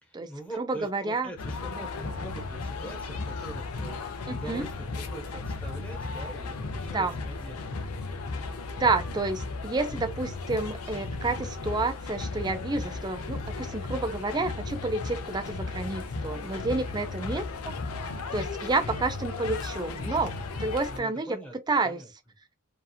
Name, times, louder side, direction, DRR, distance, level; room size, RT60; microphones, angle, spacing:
voice 1, 0.0-7.9 17.0-17.4 20.9-21.5 21.8-22.1, right 1 dB, 5° left, 0.9 m, -43 dB
voice 2, 0.6-1.3 4.3-4.7 6.9-7.2 8.8-17.7 18.3-21.4 21.7-22.0, right 3 dB, 20° right, 0.4 m, -30 dB
sound 1, 1.4-21.0, left 3 dB, 85° left, 0.6 m, -35 dB
2.8 x 2.3 x 2.3 m
head